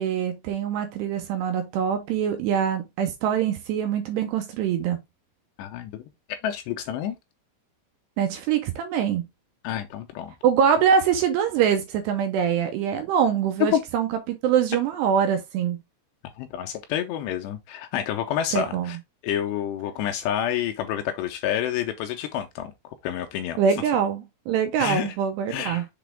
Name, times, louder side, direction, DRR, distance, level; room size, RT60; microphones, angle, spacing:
voice 1, 0.0-5.0 8.2-9.3 10.4-15.8 18.5-19.0 23.6-25.9, right 8 dB, 80° right, 2.5 m, -24 dB
voice 2, 5.6-6.0 6.4-7.2 9.6-10.3 13.6-13.8 16.4-19.0 19.2-23.6 24.8-25.2 25.5-25.8, left 10 dB, 85° left, 2.6 m, -28 dB
6.8 x 4.2 x 3.4 m
omnidirectional pair, 5.4 m